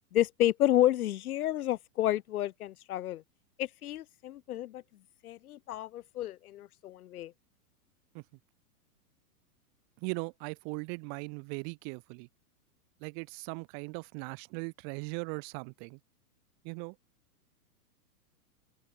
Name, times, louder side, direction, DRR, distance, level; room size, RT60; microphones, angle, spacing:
voice 1, 0.1-3.2 3.6-4.8 5.2-7.3, left 13 dB, 65° left, 1.0 m, -30 dB
voice 2, 10.0-12.3 13.0-16.0 16.6-17.0, right 40 dB or more, 20° right, 0.7 m, -39 dB
hypercardioid pair, 165°, 46 cm